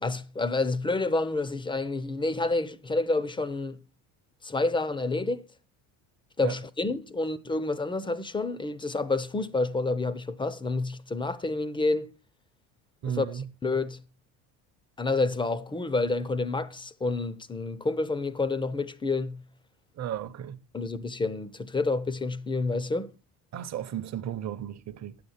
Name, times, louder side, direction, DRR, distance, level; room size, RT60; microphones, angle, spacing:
voice 1, 0.0-3.8 4.4-5.5 6.4-12.1 13.1-13.3 13.6-14.0 15.0-19.4 20.7-23.1, left 3 dB, 10° left, 0.5 m, -29 dB
voice 2, 13.0-13.5 19.9-20.6 23.5-25.2, right 9 dB, 35° right, 0.8 m, -34 dB
9.6 x 7.9 x 5.6 m
cardioid pair, 120°, 45 cm